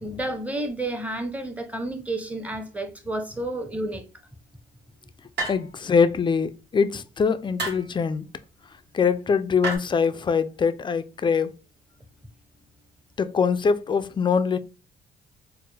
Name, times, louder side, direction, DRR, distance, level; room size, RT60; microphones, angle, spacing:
voice 1, 0.0-4.0, right 1 dB, 5° right, 0.7 m, -31 dB
sound 1, 5.4-5.9 7.6-7.9 9.6-9.8, right 3 dB, 55° right, 1.3 m, -30 dB
voice 2, 5.5-8.2 8.9-11.5 13.2-14.6, left 6 dB, 25° left, 0.3 m, -23 dB
4.3 x 2.1 x 3.2 m
cardioid pair, 90°, 20 cm